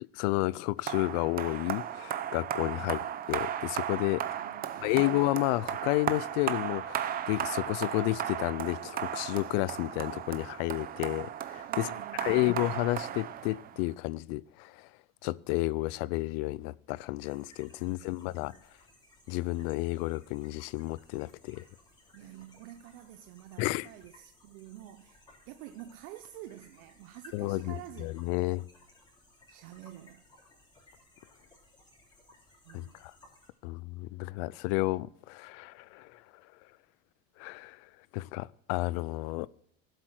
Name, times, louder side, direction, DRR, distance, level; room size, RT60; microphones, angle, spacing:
voice 1, 0.1-4.2 4.8-11.9 12.2-14.9 15.2-18.5 19.3-21.6 23.6-23.9 27.3-28.7 32.7-33.1 33.6-36.2 37.4-37.9 38.1-39.5, left 20 dB, 70° left, 0.5 m, -31 dB
sound 1, 0.9-13.9, right 10 dB, 30° right, 0.7 m, -35 dB
voice 2, 4.3-5.3 11.7-12.6 17.8-18.6 22.1-28.5 29.5-30.2 32.6-33.0, right 13 dB, 80° right, 0.8 m, -49 dB
sound 2, 17.2-33.5, left 2 dB, 15° left, 3.5 m, -60 dB
16.0 x 7.7 x 6.4 m
cardioid pair, 155°, 31 cm